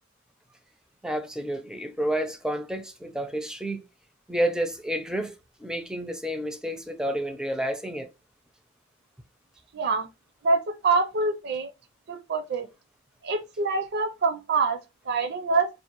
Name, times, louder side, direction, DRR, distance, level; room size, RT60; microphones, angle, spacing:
voice 1, 1.0-3.9 4.3-5.3 5.6-8.1, right 1 dB, 5° right, 0.5 m, -30 dB
voice 2, 9.7-10.1 10.4-11.7 12.1-12.7 13.2-14.8 15.0-15.7, right 4 dB, 55° right, 0.5 m, -25 dB
4.6 x 2.4 x 3.0 m
head